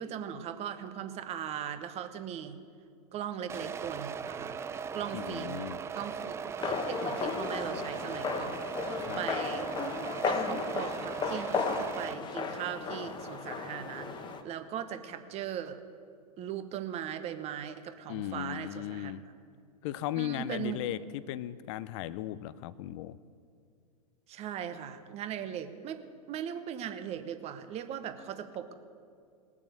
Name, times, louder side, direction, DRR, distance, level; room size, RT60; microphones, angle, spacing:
voice 1, 0.0-2.6 3.1-4.6 4.9-5.6 5.9-9.7 10.3-15.8 16.4-19.1 20.2-20.8 24.3-26.0 26.3-28.7, right 9 dB, 30° right, 9 dB, 1.1 m, -39 dB
sound 1, 3.5-12.1, right 6 dB, 15° right, 0.4 m, -38 dB
voice 2, 5.1-5.8 9.0-9.2 18.1-19.2 19.8-23.2, left 13 dB, 50° left, 16 dB, 0.5 m, -37 dB
sound 2, 6.6-14.4, left 5 dB, 20° left, 1.2 m, -35 dB
20.0 x 7.2 x 6.8 m, 2.3 s
hypercardioid pair, 105°, 20 cm